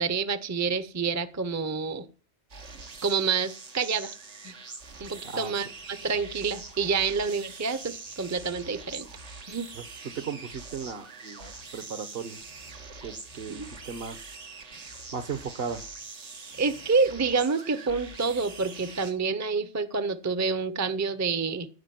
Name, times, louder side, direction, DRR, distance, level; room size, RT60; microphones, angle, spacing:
voice 1, 0.0-2.1 3.0-4.2 4.4-4.5 5.0-9.1 9.5-9.7 13.5-13.7 16.6-21.7, right 5 dB, 20° right, 0.6 m, -28 dB
sound 1, 2.5-19.1, right 4 dB, 85° right, 1.8 m, -44 dB
voice 2, 9.7-12.4 13.0-14.4 15.1-15.8, right 6 dB, 60° right, 1.3 m, -36 dB
15.0 x 5.0 x 9.2 m
omnidirectional pair, 1.2 m